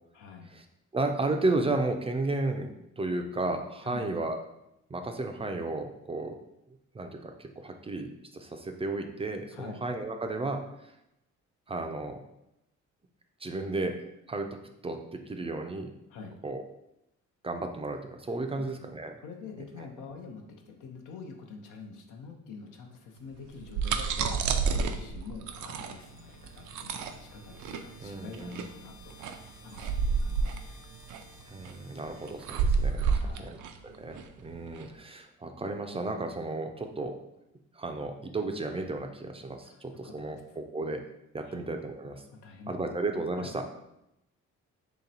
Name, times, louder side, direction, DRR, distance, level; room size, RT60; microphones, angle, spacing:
voice 1, 0.1-0.5 3.8-4.1 9.5-9.8 16.1-16.4 18.5-18.9 19.2-30.8 33.1-33.6 39.6-40.4 41.4-41.6 42.3-43.1 43.4-43.8, left 5 dB, 90° left, 3 dB, 0.7 m, -46 dB
voice 2, 0.9-4.4 4.9-6.4 6.9-10.9 11.7-12.2 13.4-14.5 14.8-15.9 16.4-16.6 17.4-19.1 28.0-28.6 31.5-33.6 33.8-37.2 37.7-41.0 41.3-42.2 42.7-43.6, right 2 dB, 20° right, 4 dB, 0.4 m, -33 dB
sound 1, 23.5-34.9, right 5 dB, 80° right, 0.4 m, -30 dB
sound 2, 25.5-33.5, left 3 dB, 40° left, 1.1 m, -56 dB
3.1 x 2.9 x 3.9 m, 0.84 s
cardioid pair, 90°, 30 cm